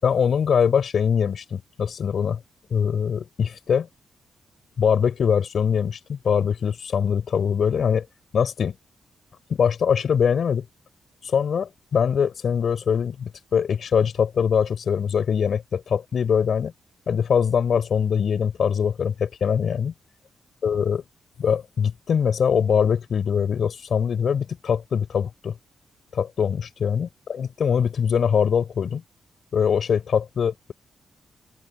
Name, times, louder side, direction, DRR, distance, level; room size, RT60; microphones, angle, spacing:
voice 1, 0.0-2.4 2.7-3.9 4.8-8.1 8.3-8.7 9.5-10.6 11.2-16.7 17.1-19.9 20.6-21.0 21.4-25.5 26.1-29.0 29.5-30.7, left 7 dB, 65° left, 4.8 m, -22 dB
open air
cardioid pair, 90°, 0 cm